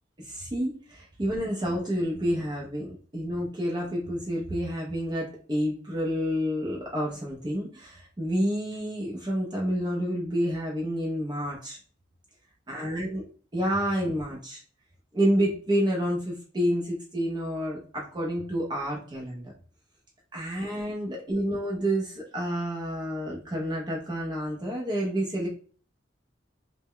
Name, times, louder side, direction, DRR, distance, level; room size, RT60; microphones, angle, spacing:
voice 1, 0.2-11.8 12.7-13.2 13.5-14.6 15.1-19.4 20.3-25.5, equal, 25° right, -3 dB, 0.5 m, -29 dB
2.1 x 2.0 x 3.6 m, 0.42 s
head